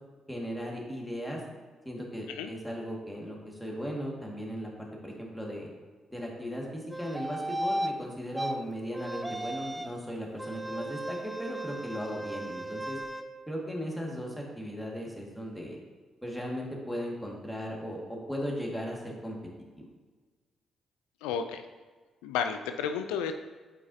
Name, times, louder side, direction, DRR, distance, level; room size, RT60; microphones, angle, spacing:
voice 1, 0.3-1.4 1.9-5.7 6.1-13.0 13.5-15.8 16.2-19.4 19.8-19.9, equal, 5° left, -2 dB, 1.9 m, -37 dB
sound 1, 6.9-7.9 8.4-8.5 8.9-10.0 10.4-13.2, right 1 dB, 15° right, 0.5 m, -35 dB
voice 2, 21.2-21.7 22.2-23.3, left 7 dB, 85° left, 7 dB, 0.3 m, -32 dB
8.6 x 4.6 x 2.8 m, 1.4 s
hypercardioid pair, 50°, 0 cm